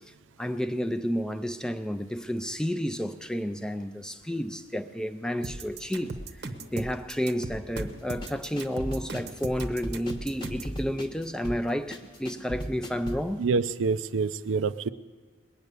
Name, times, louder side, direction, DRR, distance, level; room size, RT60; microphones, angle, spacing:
voice 1, 0.4-13.4, equal, 5° left, 0.4 m, -31 dB
sound 1, 5.4-10.8, right 2 dB, 55° right, 0.8 m, -37 dB
sound 2, 7.8-13.3, equal, 20° left, 1.0 m, -37 dB
voice 2, 13.4-14.9, right 4 dB, 80° right, 0.4 m, -26 dB
20.5 x 9.4 x 6.7 m
head